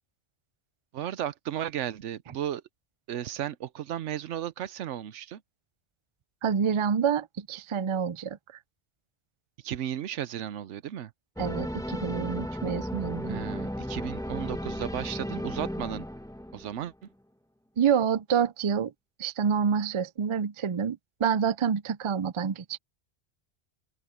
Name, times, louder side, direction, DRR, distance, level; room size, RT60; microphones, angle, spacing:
voice 1, 0.9-2.6 3.1-5.4 9.6-11.1 13.3-16.1 16.5-16.9, right 11 dB, 85° right, 1.0 m, -34 dB
voice 2, 6.4-8.4 11.4-13.4 17.8-18.9 19.2-22.8, right 7 dB, 50° right, 0.3 m, -27 dB
sound 1, 11.4-16.9, equal, 5° left, 1.0 m, -35 dB
open air
omnidirectional pair, 1.2 m